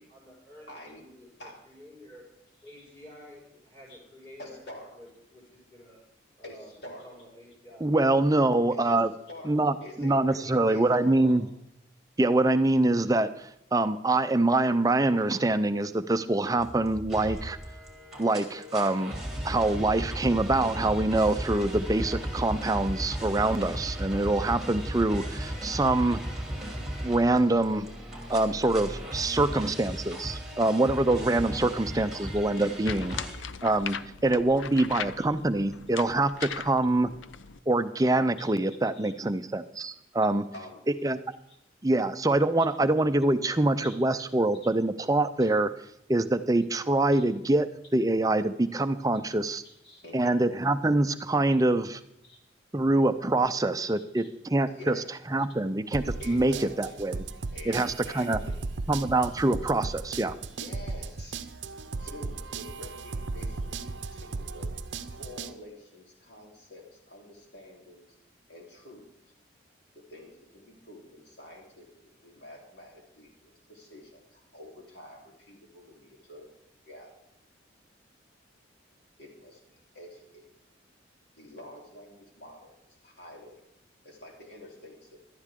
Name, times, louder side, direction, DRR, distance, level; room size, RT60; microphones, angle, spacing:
voice 1, 0.0-0.7 0.9-2.2 2.6-4.6 4.9-6.0 6.4-7.9, left 1 dB, 15° left, -5 dB, 5.6 m, -51 dB
voice 2, 0.7-1.0 1.4-1.5 2.7-2.8 3.9-4.0 4.4-4.9 6.4-7.1 8.7-9.0 9.3-9.5 9.8-11.4 29.3-29.8 31.9-32.0 33.3-33.4 35.2-35.3 36.5-36.6 38.4-39.1 40.5-40.8 41.5-41.6 43.8-44.0 47.1-47.2 49.6-50.4 52.2-52.4 53.9-54.3 54.7-55.0 56.2-57.0 57.5-58.6 60.5-61.4 62.0-63.8 64.1-64.7 65.1-68.2 68.5-69.1 69.9-71.9 72.2-76.5 76.9-77.1 79.2-80.5 81.4-83.6 84.0-85.2, left 1 dB, 60° left, -1 dB, 3.3 m, -48 dB
voice 3, 7.8-9.1 9.5-11.5 12.2-17.6 18.2-19.1 19.4-26.2 27.0-27.9 28.3-33.2 33.6-34.0 34.2-37.1 37.7-40.4 41.0-41.2 41.8-45.7 46.1-49.6 50.1-52.0 52.7-55.0 55.3-57.2 57.7-58.4 58.9-60.3, right 2 dB, 20° right, 11 dB, 0.5 m, -25 dB
sound 1, 16.6-33.3, equal, ahead, 2.7 m, -36 dB
sound 2, 32.3-37.6, left 7 dB, 80° left, 0.6 m, -40 dB
sound 3, 55.9-65.5, right 3 dB, 70° right, 0.6 m, -36 dB
17.5 x 12.0 x 3.7 m, 0.79 s
head